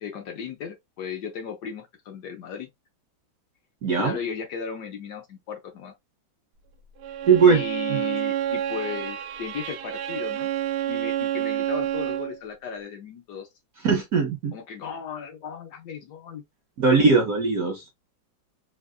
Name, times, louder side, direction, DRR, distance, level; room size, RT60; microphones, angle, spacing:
voice 1, 0.0-2.7 4.0-5.9 7.5-10.5 10.9-13.5 14.5-16.4, left 7 dB, 70° left, 1.1 m, -36 dB
voice 2, 3.8-4.2 7.2-7.6 7.9-8.0 13.8-14.5 16.8-17.8, right 5 dB, 70° right, 0.8 m, -19 dB
Bowed string instrument, 7.0-12.4, right 11 dB, 85° right, 1.4 m, -29 dB
3.5 x 2.3 x 2.2 m
omnidirectional pair, 2.2 m